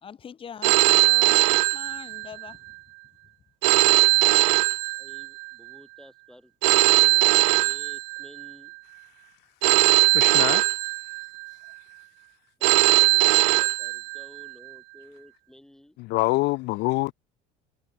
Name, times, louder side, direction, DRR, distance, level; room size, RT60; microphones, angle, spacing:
voice 1, 0.0-2.8 3.7-3.9 4.1-4.3, left 7 dB, 30° left, 2.1 m, -43 dB
Telephone, 0.6-2.5 3.6-5.5 6.6-8.5 9.6-11.5 12.6-14.5, right 37 dB, 75° right, 0.6 m, -20 dB
voice 2, 4.9-8.7 12.6-16.0, left 1 dB, 5° left, 5.8 m, -51 dB
voice 3, 10.1-10.6 16.1-17.1, left 22 dB, 65° left, 0.7 m, -25 dB
cardioid pair, 130°, 19 cm